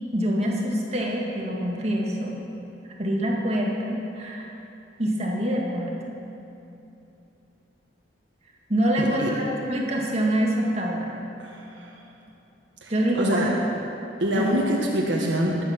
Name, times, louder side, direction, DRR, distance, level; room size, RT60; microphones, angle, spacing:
voice 1, 0.1-2.3 3.0-4.5 5.0-5.9 8.7-11.1 12.9-13.5 14.3-14.5, equal, 35° right, -2 dB, 2.1 m, -25 dB
voice 2, 9.0-9.3 11.4-11.9 12.8-13.5 14.2-15.6, equal, 85° right, -2 dB, 1.6 m, -26 dB
21.0 x 9.1 x 6.1 m, 2.9 s
head